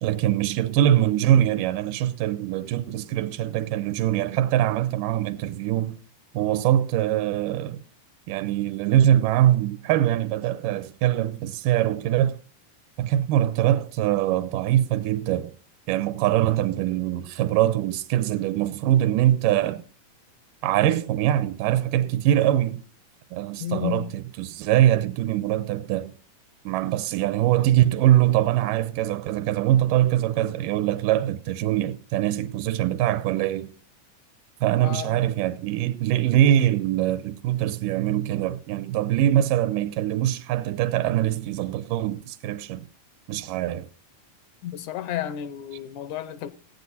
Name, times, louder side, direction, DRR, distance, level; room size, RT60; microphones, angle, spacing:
voice 1, 0.0-6.0 6.3-7.8 8.3-12.4 13.0-15.5 15.9-19.8 20.6-22.8 23.3-26.1 26.7-33.7 34.6-42.9 43.3-43.9, right 12 dB, 85° right, 2.3 m, -23 dB
voice 2, 23.6-24.1 34.8-35.3 44.6-46.5, left 11 dB, 75° left, 2.1 m, -32 dB
15.0 x 9.4 x 4.1 m
omnidirectional pair, 3.8 m